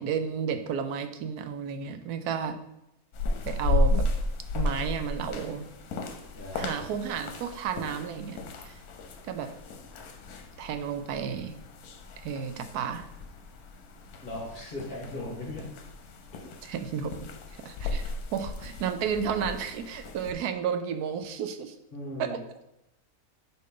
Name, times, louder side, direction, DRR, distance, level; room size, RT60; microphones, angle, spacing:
voice 1, 0.0-2.6 3.4-4.1 4.5-5.7 6.5-8.8 9.3-9.5 10.6-11.6 12.2-13.1 16.6-17.3 17.6-21.8 22.2-22.4, right 7 dB, 85° right, 8 dB, 1.2 m, -32 dB
sound 1, 3.1-20.3, left 2 dB, 80° left, 1.3 m, -34 dB
voice 2, 6.3-6.7 14.2-15.6 16.4-16.5 21.9-22.4, left 1 dB, 40° left, -4 dB, 1.7 m, -38 dB
7.1 x 4.4 x 3.8 m, 0.86 s
omnidirectional pair, 1.6 m